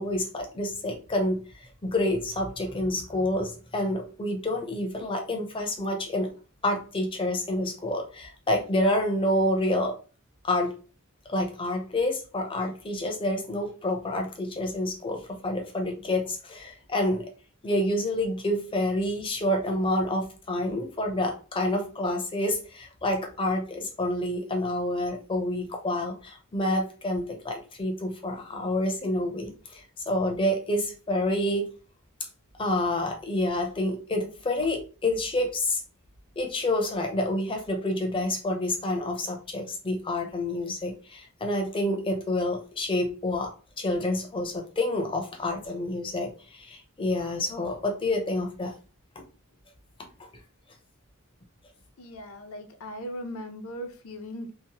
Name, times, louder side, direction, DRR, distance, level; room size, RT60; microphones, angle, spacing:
voice 1, 0.0-6.3 6.6-10.0 10.4-10.7 11.3-17.3 17.6-31.6 32.6-35.8 36.4-43.5 43.8-48.7 49.2-49.3, left 1 dB, 25° left, 2 dB, 0.5 m, -28 dB
voice 2, 52.0-54.5, equal, 70° left, 5 dB, 0.5 m, -38 dB
2.8 x 2.0 x 2.8 m, 0.36 s
head